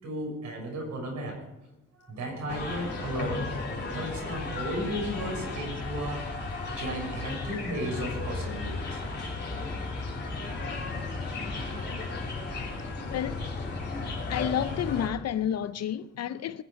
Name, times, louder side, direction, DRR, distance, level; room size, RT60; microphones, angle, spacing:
voice 1, 0.0-1.4 1.9-3.5 3.9-6.4 6.7-9.0, equal, 70° right, 6.6 m, -34 dB
sound 1, 2.5-15.1, left 3 dB, 35° left, 3.9 m, -34 dB
voice 2, 13.0-13.4 14.3-16.6, left 9 dB, 55° left, 0.6 m, -30 dB
21.5 x 7.9 x 5.3 m
cardioid pair, 90°, 30 cm